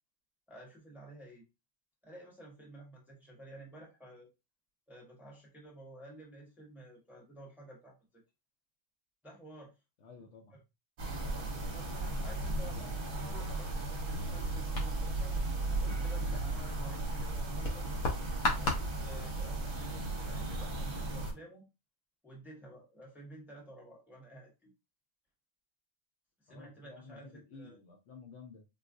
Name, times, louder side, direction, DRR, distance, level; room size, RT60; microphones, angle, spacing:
voice 1, 0.5-1.4 2.0-4.3 4.9-7.9 9.2-9.7 11.5-13.0 13.4-15.3 15.8-17.9 18.6-21.7 22.2-24.7 26.5-27.8, right 1 dB, ahead, -2 dB, 0.8 m, -52 dB
voice 2, 10.0-10.6 11.2-11.5 12.5-13.0 26.5-28.7, left 4 dB, 65° left, 3 dB, 0.9 m, -53 dB
sound 1, 11.0-21.3, right 2 dB, 50° right, 0.9 m, -36 dB
sound 2, 14.7-21.2, left 1 dB, 85° left, 1.4 m, -39 dB
4.0 x 2.3 x 2.5 m, 0.26 s
omnidirectional pair, 1.4 m